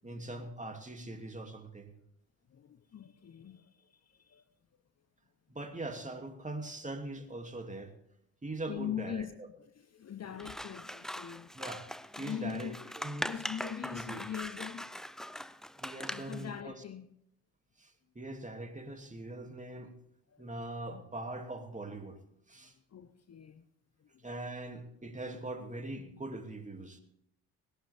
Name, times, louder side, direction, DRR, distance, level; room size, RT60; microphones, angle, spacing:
voice 1, 0.0-1.9 5.5-7.9 8.4-9.5 11.5-11.9 12.2-13.3 13.8-14.2 15.8-16.7 17.8-19.9 20.4-22.2 22.5-22.7 24.2-27.0, right 2 dB, 20° right, 2.7 m, -42 dB
voice 2, 2.5-4.4 8.7-9.3 9.6-11.6 12.2-12.8 13.1-14.9 16.1-17.1 20.3-20.4 22.9-23.7 24.0-24.2, left 9 dB, 40° left, 1.0 m, -42 dB
Scissors, 10.4-16.5, equal, ahead, 0.6 m, -41 dB
20.0 x 11.5 x 3.6 m
hypercardioid pair, 50°, 40 cm